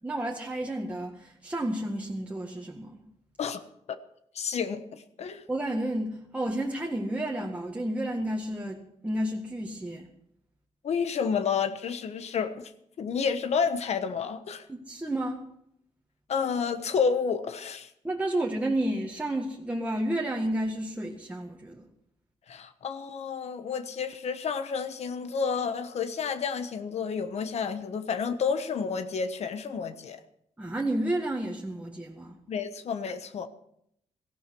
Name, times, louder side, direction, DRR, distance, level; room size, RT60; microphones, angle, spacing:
voice 1, 0.0-3.0 5.5-10.1 14.7-15.4 18.0-21.9 30.6-32.4, right 1 dB, 10° right, -1 dB, 1.7 m, -31 dB
voice 2, 4.3-5.5 10.8-12.7 13.0-14.7 16.3-17.9 22.5-30.2 32.5-33.5, left 6 dB, 65° left, 10 dB, 1.2 m, -30 dB
17.5 x 15.0 x 4.7 m, 0.73 s
cardioid pair, 105°, 12 cm